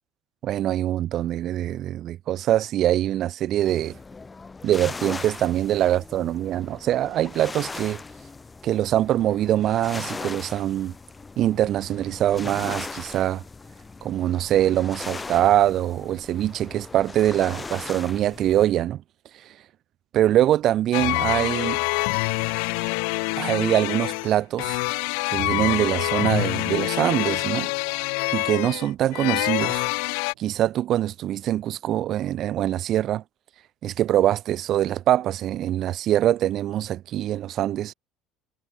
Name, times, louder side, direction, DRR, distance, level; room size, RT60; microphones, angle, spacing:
voice 1, 0.4-4.0 4.6-8.0 8.6-10.9 11.4-13.4 14.0-19.0 20.1-21.8 23.4-24.8 25.3-27.7 28.3-29.9 30.4-33.2 33.8-37.9, right 12 dB, 35° right, 0.6 m, -23 dB
sound 1, 3.7-18.7, left 4 dB, 10° left, 0.8 m, -39 dB
sound 2, 20.9-30.3, left 40 dB or more, 75° left, 0.8 m, -26 dB
sound 3, 22.0-30.7, right 30 dB, 90° right, 4.8 m, -57 dB
cardioid pair, 180°, 0 cm